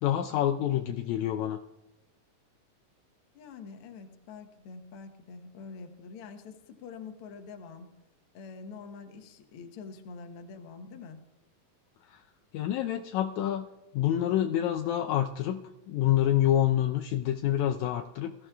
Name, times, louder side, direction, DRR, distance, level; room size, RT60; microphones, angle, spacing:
voice 1, 0.0-1.6 12.1-12.2 12.5-13.7 13.9-15.6 15.9-18.3, left 11 dB, 85° left, 7 dB, 1.6 m, -27 dB
voice 2, 3.3-7.9 8.3-11.2, left 5 dB, 65° left, 6 dB, 1.4 m, -45 dB
21.0 x 14.5 x 2.3 m, 1.0 s
omnidirectional pair, 3.8 m